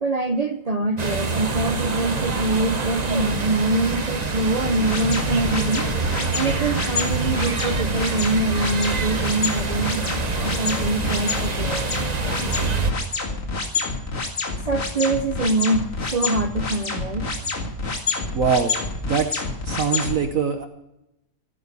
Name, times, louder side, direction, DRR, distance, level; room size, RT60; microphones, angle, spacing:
voice 1, 0.0-5.9 6.3-10.1 10.4-11.9 13.2-13.4 14.6-17.5, right 2 dB, 80° right, 7 dB, 0.3 m, -24 dB
sound 1, 1.0-12.9, right 4 dB, 30° right, 0.9 m, -26 dB
sound 2, 4.8-20.1, left 4 dB, 40° left, 2.3 m, -28 dB
voice 2, 18.3-18.7 19.0-20.7, right 6 dB, 55° right, 7 dB, 1.2 m, -23 dB
16.0 x 6.3 x 9.7 m, 0.87 s
omnidirectional pair, 1.8 m